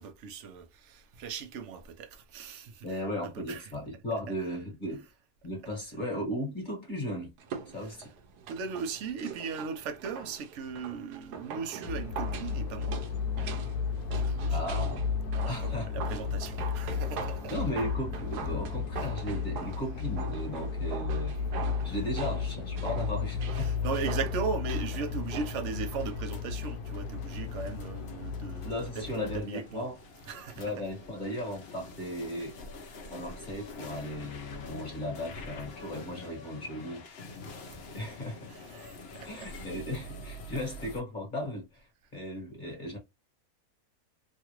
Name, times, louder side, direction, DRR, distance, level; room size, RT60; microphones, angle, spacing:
voice 1, 0.0-3.7 4.3-4.4 7.8-7.9 8.5-13.0 14.1-14.6 15.3-17.5 21.8-22.0 23.5-29.9 30.3-30.6 38.5-39.5, right 6 dB, 60° right, 0.8 m, -38 dB
voice 2, 2.8-5.0 5.4-7.3 7.7-8.1 14.5-15.0 15.5-15.9 17.5-21.3 21.8-23.7 28.6-29.9 30.5-32.6 33.1-37.0 37.9-38.5 39.2-43.0, left 1 dB, 30° left, 1.4 m, -36 dB
sound 1, 7.4-26.2 26.5-26.6, right 6 dB, 85° right, 1.2 m, -43 dB
sound 2, 11.8-29.4, left 6 dB, 80° left, 1.1 m, -33 dB
sound 3, 22.6-41.0, left 2 dB, 55° left, 0.8 m, -47 dB
3.1 x 2.4 x 2.9 m
omnidirectional pair, 1.7 m